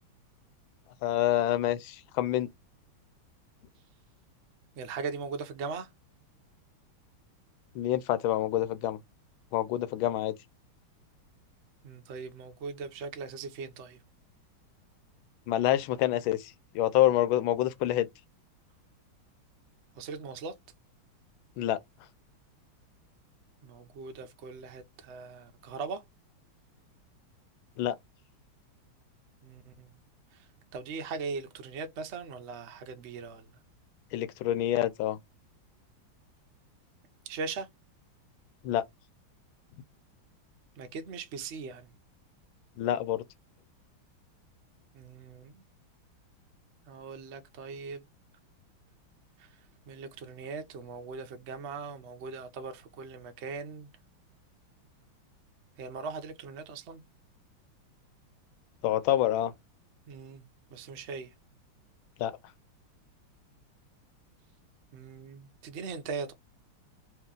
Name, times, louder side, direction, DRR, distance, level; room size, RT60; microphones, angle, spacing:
voice 1, 1.0-2.5 7.7-9.0 9.5-10.3 15.5-18.1 21.6-21.8 27.8-27.9 34.1-35.2 38.6-38.8 42.8-43.2 58.8-59.5 62.2-62.3, left 13 dB, 80° left, 1.4 m, -27 dB
voice 2, 4.8-5.9 11.8-14.0 20.0-20.5 23.6-26.0 29.4-30.0 30.7-33.5 37.3-37.7 40.8-41.9 44.9-45.6 46.9-48.0 49.4-49.5 49.9-53.9 55.8-57.0 60.1-61.3 64.9-66.3, right 5 dB, 70° right, 0.6 m, -40 dB
3.3 x 2.9 x 3.7 m
omnidirectional pair, 2.3 m